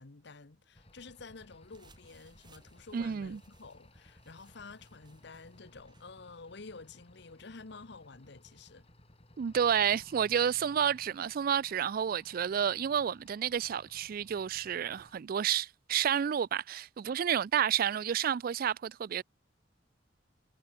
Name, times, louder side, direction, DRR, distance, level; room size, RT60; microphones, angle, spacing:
voice 1, 0.0-8.9, left 4 dB, 65° left, 1.1 m, -50 dB
sound 1, 0.7-15.2, left 1 dB, 35° left, 4.2 m, -59 dB
sound 2, 1.6-6.1, right 3 dB, 25° right, 4.6 m, -65 dB
voice 2, 2.9-3.4 9.4-19.2, right 8 dB, 50° right, 0.3 m, -30 dB
head